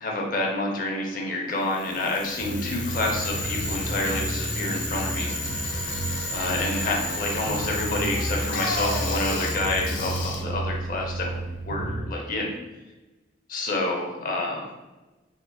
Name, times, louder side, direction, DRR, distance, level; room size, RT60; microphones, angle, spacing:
voice 1, 0.0-5.8 6.3-11.4 11.7-12.6 13.5-14.7, left 2 dB, 50° left, 0 dB, 0.6 m, -28 dB
Bicycle, 1.6-11.7, left 3 dB, 90° left, 0.6 m, -34 dB
sound 1, 2.4-12.1, right 1 dB, 50° right, 0.4 m, -32 dB
sound 2, 2.9-9.8, right 1 dB, 30° right, 1.4 m, -36 dB
3.5 x 2.7 x 2.2 m, 1.1 s
head